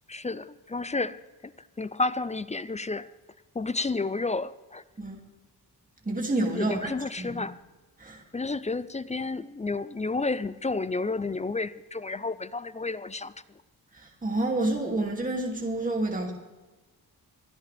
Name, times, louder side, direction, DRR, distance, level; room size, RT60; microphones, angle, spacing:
voice 1, 0.1-1.2 1.4-1.5 1.8-3.1 3.5-4.8 6.5-7.6 8.3-13.3, left 3 dB, 20° left, 15 dB, 0.4 m, -31 dB
voice 2, 6.0-6.9 7.2-7.4 8.0-8.2 13.9-16.3, right 2 dB, 20° right, 0 dB, 2.6 m, -29 dB
28.5 x 10.0 x 3.4 m, 1.2 s
wide cardioid pair, 130°, 39 cm